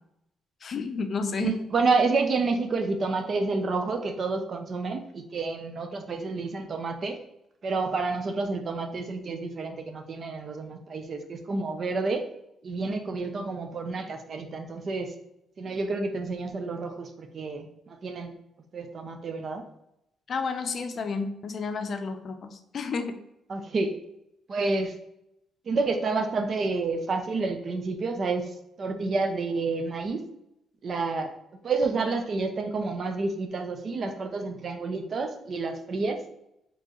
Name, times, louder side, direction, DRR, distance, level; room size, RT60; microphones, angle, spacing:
voice 1, 0.6-1.5 20.3-23.2, left 4 dB, 50° left, 7 dB, 0.5 m, -31 dB
voice 2, 1.3-7.2 7.6-12.3 12.6-15.1 15.6-18.3 18.7-19.6 23.5-23.9 24.5-24.9 25.7-28.5 28.8-30.2 30.8-31.3 31.6-36.2, right 3 dB, 50° right, 6 dB, 0.5 m, -29 dB
4.4 x 3.0 x 3.0 m, 0.81 s
cardioid pair, 90°, 0 cm